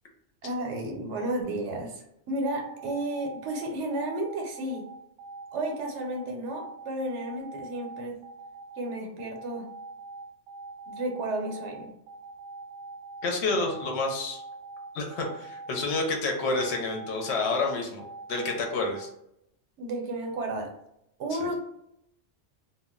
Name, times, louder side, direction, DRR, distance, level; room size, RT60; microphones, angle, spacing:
voice 1, 0.4-4.8 5.5-8.2 8.8-9.7 10.9-11.9 19.8-20.7 21.2-21.6, right 1 dB, 75° right, 2 dB, 0.9 m, -32 dB
sound 1, 2.5-19.0, right 3 dB, 60° right, 0.6 m, -43 dB
voice 2, 13.2-14.4 14.9-18.0 18.3-19.1 21.4-21.5, left 3 dB, 70° left, 1 dB, 0.9 m, -29 dB
2.2 x 2.1 x 3.5 m, 0.78 s
omnidirectional pair, 1.2 m